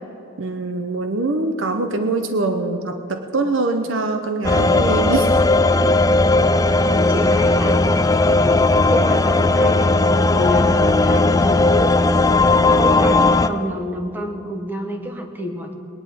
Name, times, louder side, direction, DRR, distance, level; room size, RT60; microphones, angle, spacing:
voice 1, 0.4-5.4, right 3 dB, 85° right, 6 dB, 0.9 m, -23 dB
sound 1, 4.4-13.5, left 2 dB, 20° left, 0.4 m, -16 dB
voice 2, 6.8-12.2 12.8-15.7, equal, 10° right, 3 dB, 1.4 m, -28 dB
20.0 x 10.5 x 5.2 m, 2.9 s
head